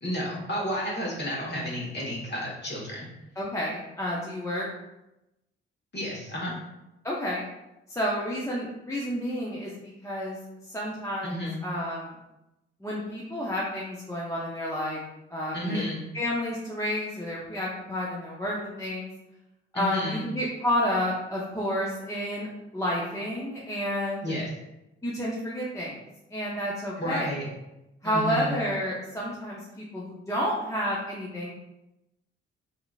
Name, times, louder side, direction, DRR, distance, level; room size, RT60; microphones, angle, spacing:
voice 1, 0.0-3.1 5.9-6.5 11.2-11.6 15.5-16.0 19.7-20.2 24.2-24.5 27.0-27.5 28.0-28.6, equal, 35° left, -4 dB, 1.2 m, -31 dB
voice 2, 3.4-4.7 7.0-7.4 7.9-10.4 10.7-12.2 12.8-15.0 15.3-15.8 16.1-19.1 19.7-24.2 25.0-26.0 26.3-27.3 28.0-31.5, equal, 10° left, -5 dB, 0.6 m, -30 dB
2.8 x 2.6 x 2.4 m, 0.93 s
hypercardioid pair, 45°, 31 cm